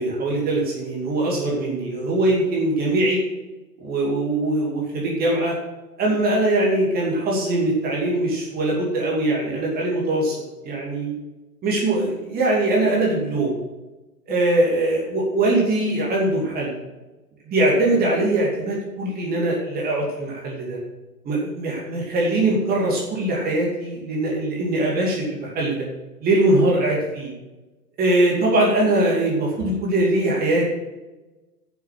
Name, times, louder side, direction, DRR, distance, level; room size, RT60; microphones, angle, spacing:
voice 1, 0.0-3.2 3.8-5.5 6.0-10.4 10.6-11.2 11.6-13.6 14.3-16.8 17.5-20.8 21.2-25.8 26.2-27.3 28.0-30.7, right 2 dB, 20° right, -3 dB, 2.6 m, -22 dB
11.0 x 7.1 x 5.8 m, 1.1 s
figure-of-eight pair, 115°, 48 cm